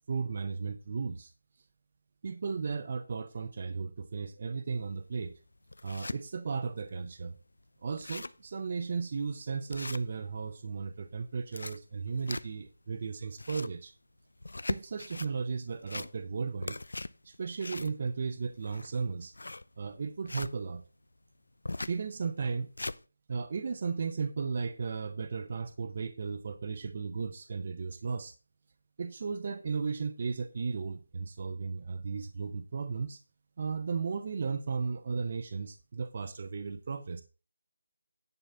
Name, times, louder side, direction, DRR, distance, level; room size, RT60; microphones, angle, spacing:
voice 1, 0.1-1.3 2.2-5.3 5.8-7.4 7.8-13.9 14.7-16.8 17.2-19.3 19.8-20.8 21.9-22.7 23.3-28.3 29.0-33.2 33.6-37.2, right 5 dB, 25° right, 8 dB, 0.5 m, -35 dB
sound 1, 4.9-5.0 5.5-6.2 6.7-6.8 7.1-7.2 7.6-7.7 7.9-8.5 8.9-9.0 9.7-10.5 11.3-12.8 13.2-13.8 14.4-15.3 15.7-16.4 16.6-20.5 21.6-22.0 22.4-23.0, left 2 dB, 90° left, 0.5 m, -39 dB
10.0 x 4.0 x 6.9 m, 0.34 s
figure-of-eight pair, 180°, 0 cm